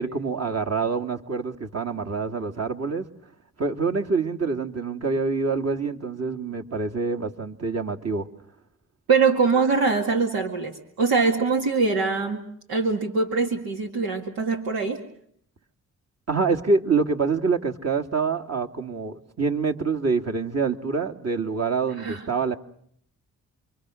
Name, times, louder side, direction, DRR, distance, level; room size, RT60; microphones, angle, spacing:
voice 1, 0.0-3.1 3.6-8.3 16.3-22.6, right 4 dB, 45° right, 4 dB, 2.2 m, -26 dB
voice 2, 9.1-15.0 22.0-22.3, right 4 dB, 90° right, 2 dB, 2.1 m, -23 dB
28.0 x 24.0 x 6.3 m, 0.66 s
supercardioid pair, 55°, 35 cm